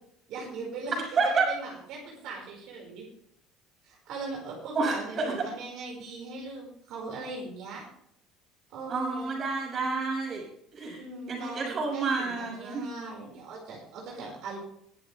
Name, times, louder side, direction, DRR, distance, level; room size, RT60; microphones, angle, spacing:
voice 1, 0.3-1.1 1.5-3.0 3.8-7.8 8.7-9.2 11.0-14.6, right 3 dB, 65° right, -2 dB, 5.4 m, -39 dB
voice 2, 4.7-5.4 8.9-10.4 10.7-11.0 11.3-12.8, right 4 dB, 35° right, -1 dB, 6.8 m, -29 dB
22.5 x 8.3 x 3.5 m, 0.70 s
cardioid pair, 135°, 0 cm